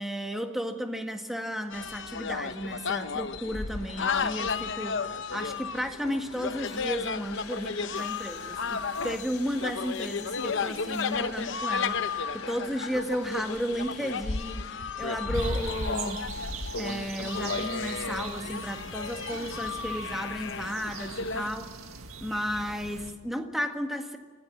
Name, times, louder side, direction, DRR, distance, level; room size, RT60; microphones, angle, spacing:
voice 1, 0.0-5.0 5.3-16.3 16.8-21.7 22.2-24.2, equal, ahead, 4 dB, 1.7 m, -33 dB
sound 1, 1.7-21.5, left 5 dB, 55° left, 0.9 m, -33 dB
sound 2, 6.6-14.7, left 7 dB, 85° left, 3.1 m, -47 dB
sound 3, 15.3-23.1, right 5 dB, 70° right, 1.9 m, -42 dB
26.0 x 17.5 x 7.5 m, 1.5 s
head